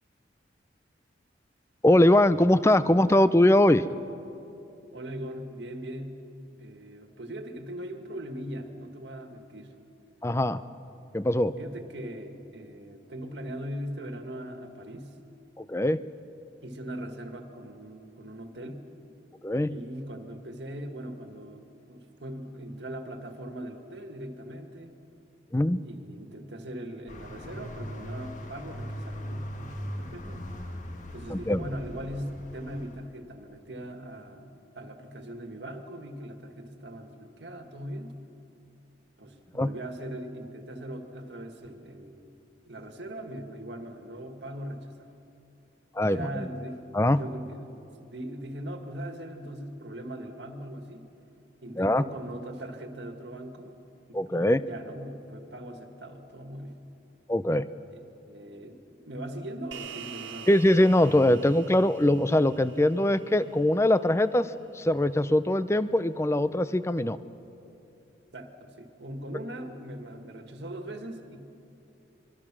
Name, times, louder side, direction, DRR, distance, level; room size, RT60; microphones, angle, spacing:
voice 1, 1.8-3.8 10.2-10.6 11.1-11.6 15.6-16.0 19.4-19.7 25.5-25.8 31.3-31.7 39.5-39.7 45.9-46.5 46.9-47.2 51.8-52.0 54.1-54.6 57.3-57.7 60.5-67.2, left 1 dB, 15° left, 14 dB, 0.5 m, -22 dB
voice 2, 4.9-6.2 6.6-9.8 11.6-15.1 16.6-18.9 19.6-24.9 25.8-30.5 31.1-38.1 39.2-42.4 42.7-45.2 46.0-51.1 51.6-53.7 54.1-56.8 57.9-60.6 68.3-71.4, right 1 dB, 70° right, 6 dB, 1.8 m, -40 dB
sound 1, 27.1-33.0, equal, 40° left, 1.7 m, -39 dB
sound 2, 59.7-64.4, right 8 dB, 85° right, 1.9 m, -46 dB
26.0 x 22.5 x 6.1 m, 2.9 s
head